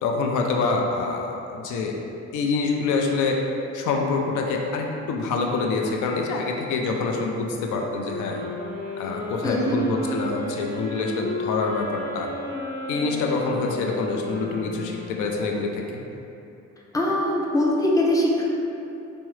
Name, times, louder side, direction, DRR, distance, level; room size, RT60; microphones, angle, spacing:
voice 1, 0.0-2.0 2.3-3.4 3.7-8.4 9.0-12.3 12.9-16.0, left 4 dB, 85° left, 1 dB, 0.5 m, -26 dB
sound 1, 8.0-15.7, left 1 dB, 60° left, 1.0 m, -34 dB
voice 2, 9.4-9.8 16.9-18.4, left 1 dB, 10° left, -3 dB, 0.5 m, -22 dB
4.5 x 2.1 x 3.1 m, 2.8 s
cardioid pair, 90°, 30 cm